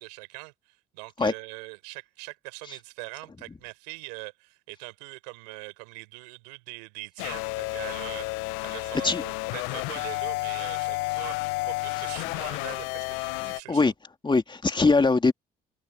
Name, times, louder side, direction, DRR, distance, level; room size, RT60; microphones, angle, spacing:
voice 1, 0.0-13.9, right 30 dB, 80° right, 4.5 m, -42 dB
sound 1, 7.2-13.6, left 25 dB, 70° left, 0.5 m, -31 dB
voice 2, 13.4-13.9 14.2-15.3, left 3 dB, 25° left, 2.7 m, -22 dB
hypercardioid pair, 60°, 21 cm